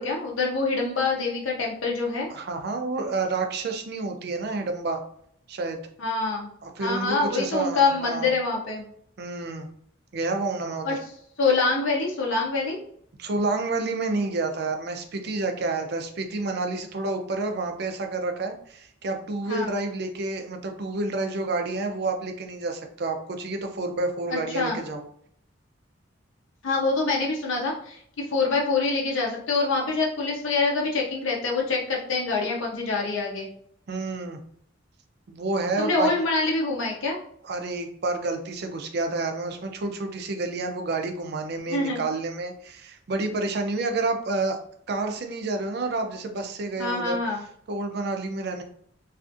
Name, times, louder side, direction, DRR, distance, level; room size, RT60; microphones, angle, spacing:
voice 1, 0.0-2.3 6.0-6.5 6.8-8.9 10.8-10.9 11.4-12.8 19.5-19.7 24.3-24.8 26.6-33.5 35.8-37.2 41.7-42.0 46.8-47.4, left 3 dB, 70° left, -1 dB, 0.5 m, -25 dB
voice 2, 2.3-5.0 5.5-5.8 6.6-8.3 9.2-9.7 10.1-11.0 13.2-25.0 33.9-34.4 35.3-36.1 37.4-44.6 44.9-47.2 47.7-48.6, right 3 dB, 50° right, 5 dB, 0.4 m, -29 dB
2.5 x 2.4 x 2.5 m, 0.65 s
head